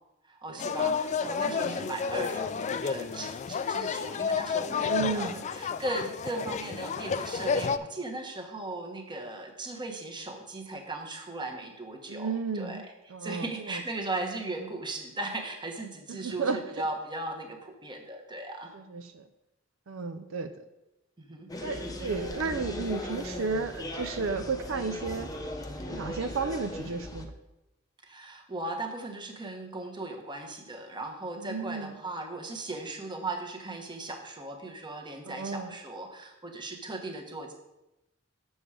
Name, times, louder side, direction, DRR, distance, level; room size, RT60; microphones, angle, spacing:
voice 1, 0.3-18.7 21.2-21.5 28.0-37.5, right 2 dB, 25° right, 3 dB, 1.2 m, -38 dB
sound 1, 0.6-7.8, left 6 dB, 35° left, 0.3 m, -31 dB
voice 2, 4.8-5.4 12.1-12.8 13.1-13.8 16.1-16.6 18.7-19.2 19.9-20.5 21.6-25.3 25.9-27.3 31.4-31.9 35.3-35.7, right 4 dB, 75° right, 8 dB, 0.5 m, -33 dB
sound 2, 21.5-27.3, left 1 dB, 20° left, 0.8 m, -38 dB
7.1 x 7.0 x 4.9 m, 0.94 s
head